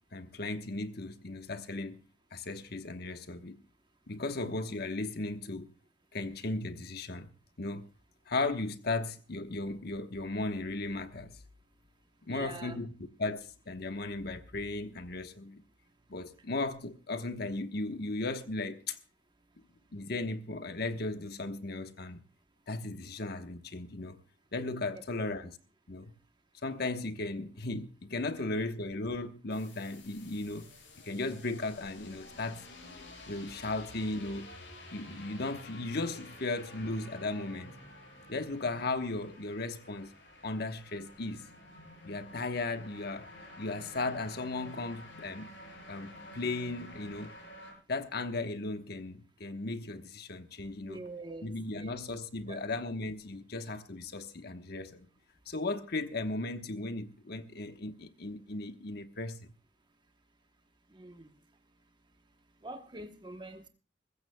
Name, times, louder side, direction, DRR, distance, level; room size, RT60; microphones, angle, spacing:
voice 1, 0.1-2.0 2.3-3.6 4.1-5.7 6.1-7.3 7.6-7.8 8.3-11.4 12.3-15.6 16.1-19.0 19.9-22.2 22.7-24.2 24.5-25.6 25.9-26.1 26.6-30.7 31.0-32.6 33.3-34.5 34.9-37.8 38.3-40.1 40.4-41.5 42.0-43.3 43.6-45.5 45.9-47.3 47.9-51.0 51.4-55.1 55.5-59.5, left 2 dB, 60° left, 1.2 m, -36 dB
voice 2, 12.3-12.8 50.8-51.9 52.5-52.6 60.9-61.3 62.6-63.7, right 2 dB, 25° right, 1.0 m, -45 dB
sound 1, 29.5-47.7, left 1 dB, 75° left, 7.5 m, -51 dB
21.5 x 15.0 x 2.3 m
head